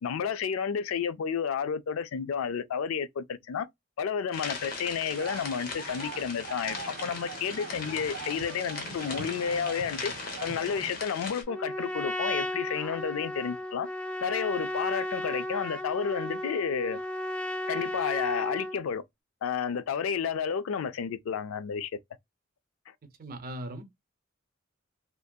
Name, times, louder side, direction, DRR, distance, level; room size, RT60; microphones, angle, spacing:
voice 1, 0.0-3.7 4.0-10.1 10.4-13.9 14.2-17.0 17.7-19.0 19.4-21.9, left 7 dB, 85° left, 0.3 m, -31 dB
sound 1, 4.3-11.4, left 4 dB, 45° left, 0.6 m, -39 dB
sound 2, 5.1-10.9, right 5 dB, 90° right, 0.6 m, -42 dB
Trumpet, 11.5-18.8, left 1 dB, 5° left, 0.3 m, -34 dB
voice 2, 23.2-23.8, right 1 dB, 45° right, 0.5 m, -38 dB
2.6 x 2.5 x 2.2 m
head